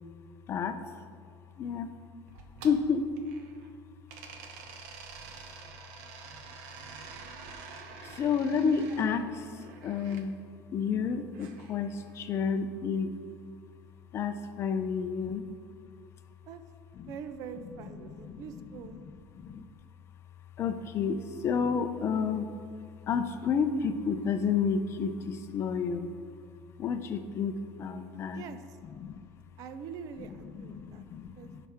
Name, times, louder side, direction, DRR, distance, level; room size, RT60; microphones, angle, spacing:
voice 1, 1.6-1.9 2.6-3.1 8.0-9.4 9.8-10.3 10.7-13.1 14.1-15.4 17.0-17.1 17.9-19.2 19.4-19.6 20.6-22.5 23.1-26.1 26.8-28.4 29.0-29.2 30.2-31.6, left 6 dB, 35° left, 8 dB, 0.6 m, -30 dB
sound 1, 2.3-3.7 4.1-10.3 11.3-12.5, right 5 dB, 85° right, 1.0 m, -48 dB
voice 2, 17.1-19.1 28.3-28.6 29.6-31.1 31.4-31.5, right 7 dB, 45° right, 10 dB, 0.5 m, -44 dB
15.5 x 5.9 x 3.6 m, 2.1 s
cardioid pair, 160°, 8 cm